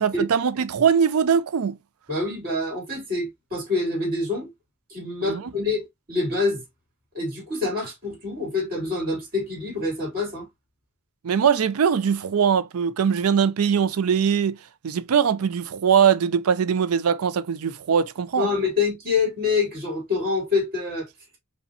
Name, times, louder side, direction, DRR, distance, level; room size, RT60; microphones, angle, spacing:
voice 1, 0.0-1.8 5.2-5.5 11.2-14.6 14.8-18.5, right 7 dB, 75° right, 0.4 m, -21 dB
voice 2, 2.1-4.5 4.9-6.6 7.1-10.5 18.3-21.1, left 3 dB, 45° right, 2.3 m, -26 dB
5.1 x 2.2 x 2.6 m
head